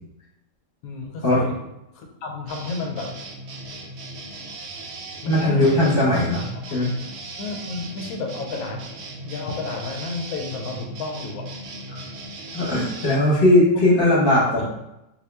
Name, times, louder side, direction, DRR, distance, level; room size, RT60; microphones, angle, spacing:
voice 1, 0.8-1.6 1.9-3.2 4.0-4.1 5.2-6.1 6.7-6.8 7.4-8.9 9.2-11.5 13.7-14.7, left 3 dB, 90° left, 2 dB, 1.1 m, -32 dB
sound 1, 2.5-13.2, right 2 dB, 65° right, 0.7 m, -38 dB
voice 2, 5.3-6.4 6.7-6.9 12.5-14.6, left 1 dB, 45° left, -6 dB, 1.1 m, -18 dB
2.8 x 2.6 x 3.3 m, 0.87 s
omnidirectional pair, 1.5 m